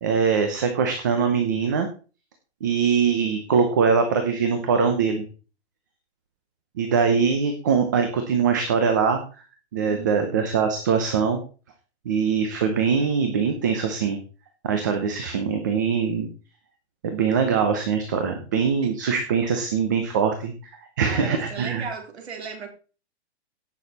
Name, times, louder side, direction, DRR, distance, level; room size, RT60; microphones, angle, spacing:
voice 1, 0.0-1.9 2.6-5.2 6.8-9.2 9.7-11.4 12.0-14.2 14.6-16.3 17.0-20.5 21.0-21.8, right 6 dB, 15° right, 0.7 m, -22 dB
voice 2, 9.9-10.3 18.8-18.9 21.0-22.7, right 6 dB, 70° right, 4.2 m, -36 dB
17.0 x 6.5 x 4.1 m
hypercardioid pair, 180°, 34 cm